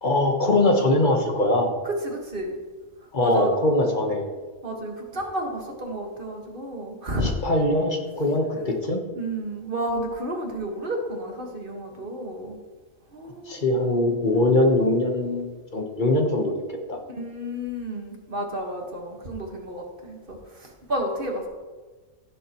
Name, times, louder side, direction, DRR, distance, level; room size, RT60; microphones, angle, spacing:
voice 1, 0.0-1.7 3.1-4.2 7.2-9.0 13.5-16.5 16.9-17.0, left 2 dB, 35° left, 3 dB, 1.2 m, -22 dB
voice 2, 1.8-2.6 3.2-3.5 4.6-7.4 8.6-8.8 9.1-12.6 13.1-13.7 14.3-14.6 17.1-21.5, right 1 dB, 40° right, 1 dB, 1.7 m, -31 dB
16.0 x 7.2 x 3.0 m, 1.3 s
omnidirectional pair, 1.5 m